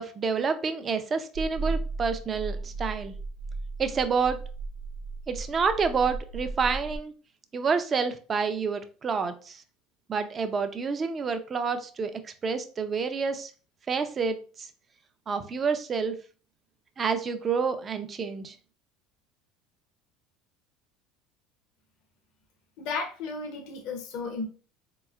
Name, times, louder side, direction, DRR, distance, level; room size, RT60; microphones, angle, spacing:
voice 1, 0.0-3.2 3.8-4.4 5.3-7.1 7.5-9.6 10.1-13.5 13.9-14.7 15.3-16.2 17.0-18.6, right 5 dB, 35° right, 9 dB, 0.5 m, -28 dB
sound 1, 1.3-7.0, right 3 dB, 85° right, 0.8 m, -35 dB
voice 2, 22.8-24.5, left 4 dB, 70° left, 3 dB, 0.7 m, -34 dB
4.1 x 3.0 x 2.4 m, 0.38 s
supercardioid pair, 90°, 0 cm